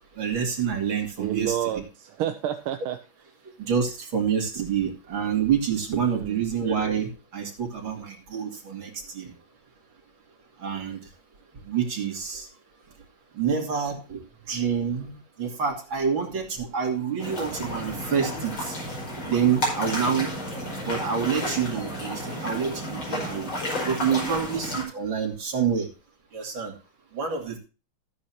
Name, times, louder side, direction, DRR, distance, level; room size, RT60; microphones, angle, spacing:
voice 1, 0.2-1.7 3.7-9.3 10.6-11.0 11.7-12.5 13.4-14.2 14.5-18.8 19.3-20.3 20.9-23.5 23.9-25.9 26.3-26.7 27.1-27.6, right 7 dB, 65° right, 2 dB, 3.4 m, -27 dB
voice 2, 1.2-3.0 6.1-6.4, right 11 dB, 85° right, 6 dB, 1.7 m, -29 dB
sound 1, 17.2-24.8, left 1 dB, 70° left, 5.8 m, -32 dB
14.0 x 9.4 x 2.9 m, 0.32 s
omnidirectional pair, 2.3 m